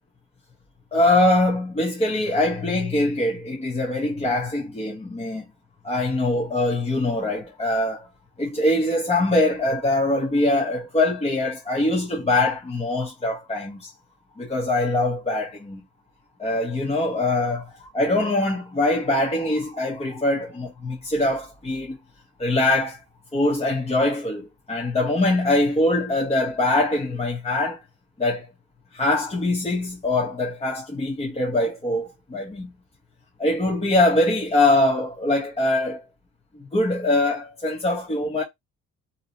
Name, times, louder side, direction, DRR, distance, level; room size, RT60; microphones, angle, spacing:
voice 1, 0.9-5.5 5.8-8.1 8.4-13.9 14.4-15.8 16.4-22.0 22.4-23.0 23.3-27.8 28.2-28.5 28.9-32.7 33.4-36.0 36.5-38.4, left 2 dB, 20° left, 0.8 m, -23 dB
2.8 x 2.0 x 2.7 m
cardioid pair, 90°, 30 cm